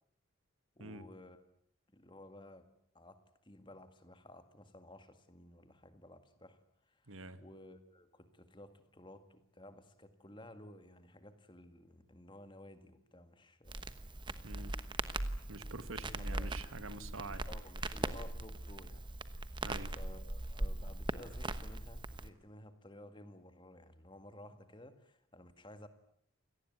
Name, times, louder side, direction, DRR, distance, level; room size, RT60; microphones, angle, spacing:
voice 1, 0.8-1.5 1.9-2.7 2.9-13.9 16.0-16.6 17.5-19.1 19.4-19.6 19.9-25.9, left 1 dB, 20° left, 10 dB, 2.0 m, -55 dB
voice 2, 7.1-7.4 14.4-14.8 15.5-17.5 19.6-20.0, right 2 dB, 75° right, 12 dB, 1.8 m, -46 dB
Crackle, 13.7-22.3, right 2 dB, 20° right, 1.1 m, -40 dB
28.5 x 18.5 x 9.5 m, 0.69 s
head